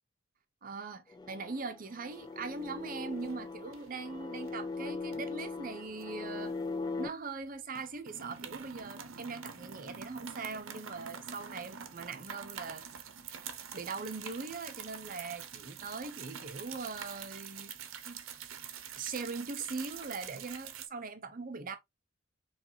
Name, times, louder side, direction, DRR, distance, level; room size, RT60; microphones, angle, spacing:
voice 1, 0.6-6.6 7.0-12.9 13.7-17.7 18.1-18.2 19.0-21.8, right 4 dB, 40° right, 0.7 m, -41 dB
sound 1, 1.1-7.1, left 3 dB, 20° left, 0.3 m, -40 dB
sound 2, 2.2-2.8 3.1-3.4 3.7-4.5 5.1-7.0 7.3-7.4 7.7-20.9, right 7 dB, 85° right, 0.7 m, -46 dB
4.5 x 3.1 x 2.7 m
head